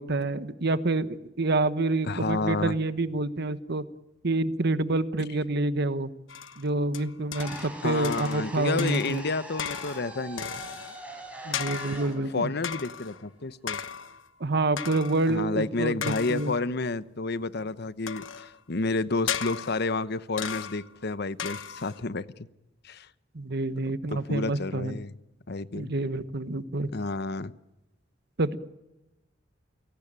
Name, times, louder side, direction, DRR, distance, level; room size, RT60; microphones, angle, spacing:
voice 1, 0.0-3.8 4.2-6.1 6.6-9.2 11.4-12.5 14.4-16.5 23.3-25.0 25.7-26.9 28.4-28.6, right 2 dB, 60° right, 13 dB, 1.2 m, -27 dB
voice 2, 2.1-2.8 7.8-10.6 12.3-13.8 15.3-22.5 22.8-23.1 23.9-25.1 25.5-25.9 26.9-27.5, left 3 dB, 60° left, 15 dB, 0.9 m, -30 dB
sound 1, 6.3-7.8 8.0-8.5 8.8-11.1 11.5-12.2 12.6-13.2 13.7-14.3 14.8-15.3 16.0-16.7 18.1-18.6 19.3-20.0 20.4-21.0 21.4-22.0, left 8 dB, 85° left, 1.2 m, -36 dB
sound 2, 7.3-13.5, right 1 dB, 5° right, 6.6 m, -43 dB
29.0 x 17.5 x 8.9 m, 0.97 s
head